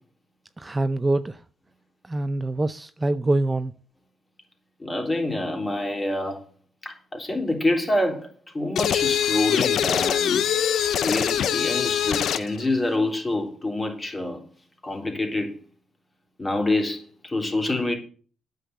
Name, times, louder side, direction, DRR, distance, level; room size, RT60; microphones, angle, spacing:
voice 1, 0.6-1.4 2.1-3.7, right 2 dB, 20° right, 0.5 m, -24 dB
voice 2, 4.8-6.4 6.8-8.3 8.5-10.4 11.0-14.4 14.8-15.5 16.4-17.9, left 2 dB, 25° left, 3.4 m, -26 dB
sound 1, 8.8-12.5, left 9 dB, 70° left, 0.6 m, -23 dB
9.1 x 6.7 x 8.2 m
cardioid pair, 90°, 0 cm